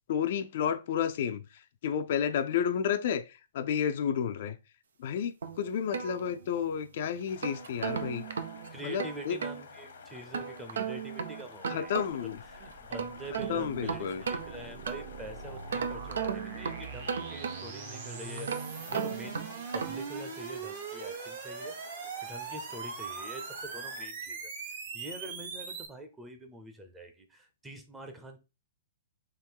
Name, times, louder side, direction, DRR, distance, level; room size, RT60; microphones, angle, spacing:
voice 1, 0.1-4.6 5.0-8.2 8.8-9.4 11.7-12.4 13.5-14.2, left 8 dB, 55° left, 0.4 m, -31 dB
sound 1, 5.4-6.8 7.2-9.6 10.3-12.4 12.7-15.2 15.7-17.9 18.4-20.1, right 6 dB, 90° right, 0.6 m, -36 dB
sound 2, 7.3-24.1, left 6 dB, 80° left, 1.0 m, -51 dB
voice 2, 8.7-12.1 12.5-18.5 18.9-21.7 22.2-24.5 24.9-28.4, right 1 dB, 10° right, 0.6 m, -45 dB
sound 3, 11.9-25.9, right 5 dB, 50° right, 1.0 m, -42 dB
3.7 x 3.0 x 4.5 m
hypercardioid pair, 160°, 0 cm